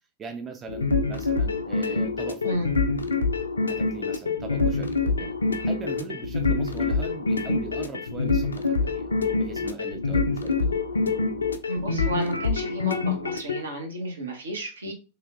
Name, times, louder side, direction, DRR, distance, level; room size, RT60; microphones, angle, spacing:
voice 1, 0.2-2.6 3.7-5.4 5.7-9.1 9.4-10.8 14.8-14.9, right 5 dB, 25° right, 0.4 m, -39 dB
sound 1, 0.7-13.6, left 4 dB, 75° left, 0.3 m, -26 dB
voice 2, 11.7-14.9, equal, 70° right, 0.8 m, -32 dB
3.3 x 2.9 x 2.4 m
figure-of-eight pair, 90°, 0 cm